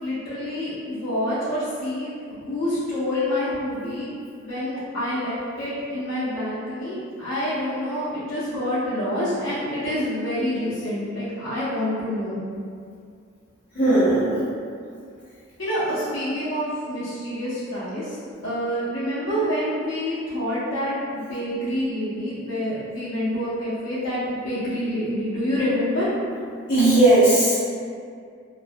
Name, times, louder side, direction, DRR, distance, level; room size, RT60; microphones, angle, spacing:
voice 1, 0.0-2.1 2.4-4.1 4.4-12.4 15.6-18.1 18.4-26.1 27.5-27.7, equal, 80° left, -12 dB, 0.6 m, -27 dB
voice 2, 13.7-14.4 26.7-27.7, right 2 dB, 45° left, -16 dB, 0.8 m, -17 dB
2.4 x 2.1 x 2.5 m, 2.2 s
head